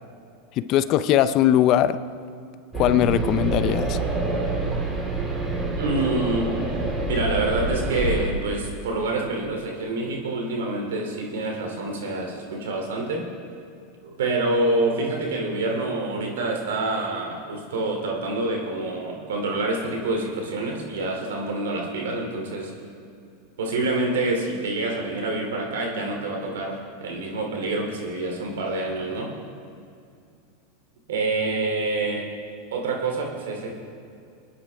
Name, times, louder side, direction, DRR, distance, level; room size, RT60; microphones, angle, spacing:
voice 1, 0.6-2.0 2.7-4.0, left 11 dB, 45° left, 13 dB, 0.6 m, -20 dB
sound 1, 2.7-8.3, right 3 dB, 25° right, 2.4 m, -26 dB
voice 2, 5.8-6.5 7.1-13.3 14.0-22.7 23.6-29.3 31.1-32.3 32.7-33.7, right 2 dB, 85° right, 1 dB, 2.8 m, -27 dB
25.5 x 9.8 x 3.5 m, 2.5 s
hypercardioid pair, 115°, 0 cm